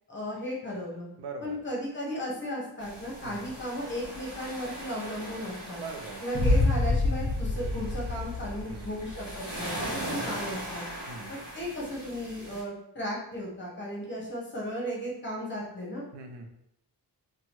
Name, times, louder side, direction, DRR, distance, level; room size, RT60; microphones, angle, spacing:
voice 1, 0.1-1.1 1.4-5.8 6.2-10.8 11.3-16.0, equal, 25° left, -4 dB, 0.9 m, -35 dB
voice 2, 1.2-1.6 3.2-3.6 5.8-6.2 8.6-9.0 11.1-11.4 16.1-16.5, right 3 dB, 70° right, 4 dB, 0.5 m, -42 dB
sound 1, 2.8-12.6, right 1 dB, 10° right, 1.2 m, -40 dB
sound 2, 6.3-9.3, left 2 dB, 45° left, 0.6 m, -27 dB
2.9 x 2.2 x 2.9 m, 0.78 s
wide cardioid pair, 105°, 43 cm